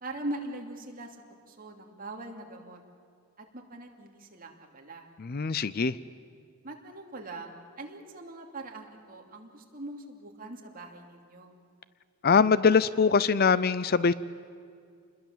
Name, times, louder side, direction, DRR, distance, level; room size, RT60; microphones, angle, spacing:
voice 1, 0.0-1.2 1.5-2.8 3.4-5.1 6.6-11.6, right 2 dB, 40° right, 2 dB, 2.7 m, -41 dB
voice 2, 5.2-6.0 12.2-14.1, left 5 dB, 45° left, 17 dB, 0.5 m, -23 dB
28.0 x 21.0 x 7.4 m, 2.3 s
head